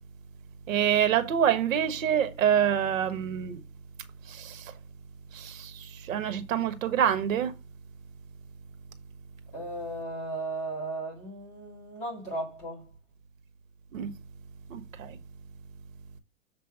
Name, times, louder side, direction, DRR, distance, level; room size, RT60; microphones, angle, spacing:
voice 1, 0.7-3.6 4.3-4.7 5.3-7.5 13.9-14.1 14.7-15.2, right 9 dB, 65° right, 1.3 m, -26 dB
voice 2, 9.5-12.8, right 2 dB, 15° left, 2.0 m, -36 dB
7.0 x 3.4 x 6.2 m
supercardioid pair, 180°, 42 cm